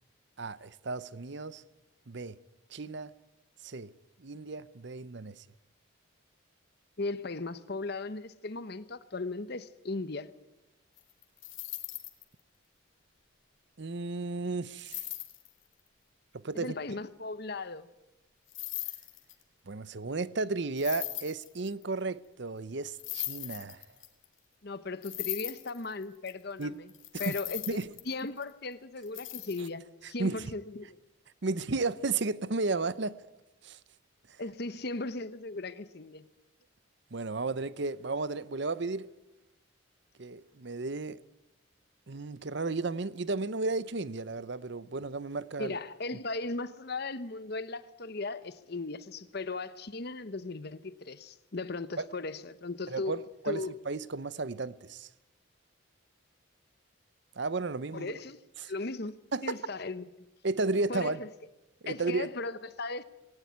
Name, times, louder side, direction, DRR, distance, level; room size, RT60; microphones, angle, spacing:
voice 1, 0.4-1.6 2.1-2.4 2.7-3.1 3.6-3.9 4.2-5.4 13.8-15.0 16.3-16.7 19.7-23.8 26.6-26.7 27.1-27.4 27.7-27.9 30.2-30.5 31.4-33.2 33.6-33.8 37.1-39.1 40.2-41.2 42.1-45.8 52.0-52.1 52.9-53.2 53.4-55.1 57.4-58.2 58.6-58.7 59.3-59.6 60.4-61.2 61.8-62.3, right 3 dB, 55° right, 0.7 m, -33 dB
voice 2, 7.0-10.3 16.5-17.9 24.6-26.9 27.2-27.8 28.1-31.0 34.4-36.2 45.6-53.2 53.5-53.7 57.9-58.4 58.6-59.2 59.4-60.1 60.9-61.3 61.9-63.0, left 3 dB, 50° left, 0.9 m, -37 dB
sound 1, 11.0-12.2 14.8-15.5 18.5-19.4 20.8-21.8 22.9-24.3 25.0-26.3 26.6-26.7 26.9-28.5 29.0-29.7, left 17 dB, 70° left, 2.3 m, -39 dB
19.0 x 18.0 x 9.4 m
head